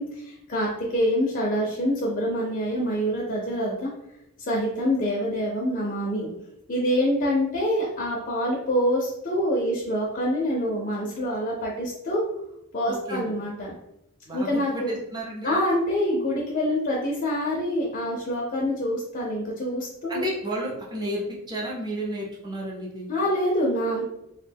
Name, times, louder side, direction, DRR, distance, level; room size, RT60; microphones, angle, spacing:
voice 1, 0.0-3.9 4.4-6.3 6.7-12.2 12.7-13.7 14.3-15.0 15.4-20.2 23.1-24.0, equal, 40° left, -4 dB, 0.5 m, -26 dB
voice 2, 12.9-13.3 14.3-15.6 20.1-23.1, right 1 dB, 20° right, -3 dB, 0.5 m, -32 dB
2.3 x 2.1 x 3.4 m, 0.85 s
head